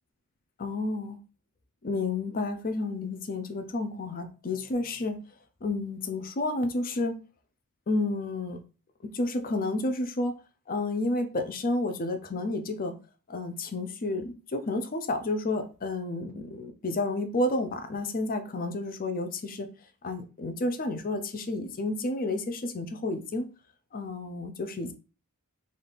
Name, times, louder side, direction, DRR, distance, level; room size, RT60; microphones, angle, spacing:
voice 1, 0.6-1.2 1.8-5.2 5.6-7.2 7.9-8.6 9.1-10.3 10.7-12.9 13.3-19.7 20.0-23.5 23.9-24.9, left 2 dB, 40° left, 0.6 m, -30 dB
4.1 x 2.5 x 3.4 m
head